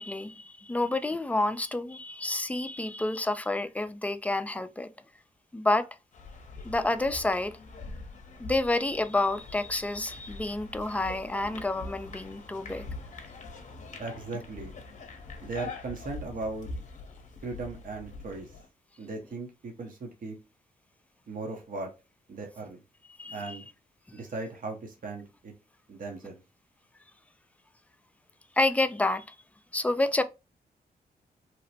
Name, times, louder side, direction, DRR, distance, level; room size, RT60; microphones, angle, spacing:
voice 1, 0.0-4.9 5.5-5.9 6.6-7.5 8.4-12.8 23.2-23.6 28.6-29.2 29.7-30.2, left 2 dB, 10° left, 0.3 m, -29 dB
sound 1, 6.1-18.7, left 3 dB, 45° left, 0.6 m, -43 dB
voice 2, 14.0-14.8 15.4-16.7 17.4-18.5 19.0-20.4 21.3-21.9 22.3-22.8 23.3-23.6 24.1-25.5 25.9-26.4, right 3 dB, 55° right, 0.8 m, -37 dB
2.9 x 2.0 x 2.7 m
cardioid pair, 60°, 17 cm